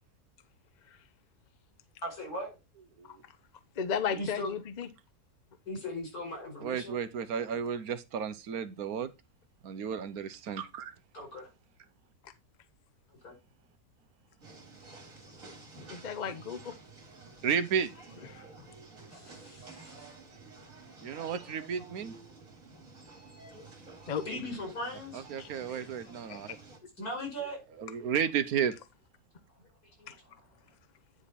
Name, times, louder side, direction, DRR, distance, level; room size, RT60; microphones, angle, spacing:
voice 1, 2.0-2.5 4.1-4.5 5.7-7.0 11.1-11.5 13.2-13.3 19.1-20.1 24.3-25.2 27.0-27.6 30.0-30.1, left 1 dB, 75° left, 5.7 m, -38 dB
voice 2, 3.8-4.9 15.9-16.7 18.3-18.4 24.1-24.2 25.4-25.8 26.3-26.4 30.1-30.2, left 7 dB, 40° left, 0.7 m, -34 dB
voice 3, 6.6-9.1 9.6-10.9 17.4-17.9 21.0-22.1 25.1-26.6 27.8-28.7, right 7 dB, 75° right, 1.2 m, -32 dB
sound 1, 14.4-26.8, right 3 dB, 60° right, 2.7 m, -51 dB
9.8 x 5.2 x 4.2 m
omnidirectional pair, 1.6 m